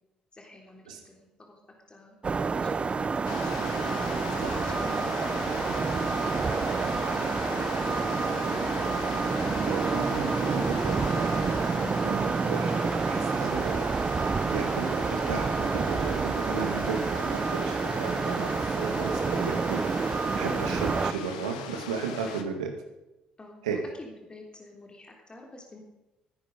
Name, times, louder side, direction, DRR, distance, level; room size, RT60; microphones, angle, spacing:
voice 1, 0.3-1.6 1.9-4.2 4.5-5.7 8.6-8.7 16.6-16.8 19.1-19.3 20.8-20.9 22.2-22.4 23.4-25.8, left 2 dB, 25° left, 1 dB, 3.3 m, -49 dB
sound 1, 2.2-21.1, right 4 dB, 30° right, 0.8 m, -28 dB
sound 2, 3.2-22.4, left 9 dB, 75° left, 1.0 m, -40 dB
voice 2, 9.6-13.9 14.2-22.7 23.6-23.8, right 5 dB, 75° right, 4 dB, 1.9 m, -35 dB
19.0 x 10.0 x 5.2 m, 0.98 s
figure-of-eight pair, 45°, 4 cm